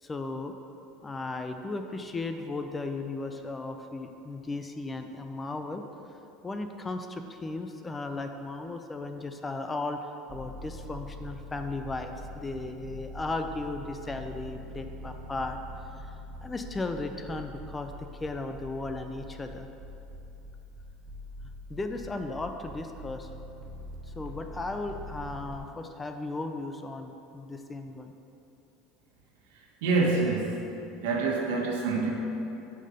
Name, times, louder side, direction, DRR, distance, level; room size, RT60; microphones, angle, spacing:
voice 1, 0.0-0.5 1.0-5.8 6.4-15.6 16.0-16.1 16.4-19.7 21.7-23.3 24.1-28.1, left 2 dB, 15° left, 6 dB, 0.4 m, -36 dB
sound 1, 10.3-25.6, equal, 25° right, 1.3 m, -44 dB
voice 2, 29.8-30.6 30.9-32.1, right 3 dB, 85° right, -1 dB, 1.3 m, -26 dB
5.7 x 5.1 x 6.5 m, 2.8 s
supercardioid pair, 125°, 0 cm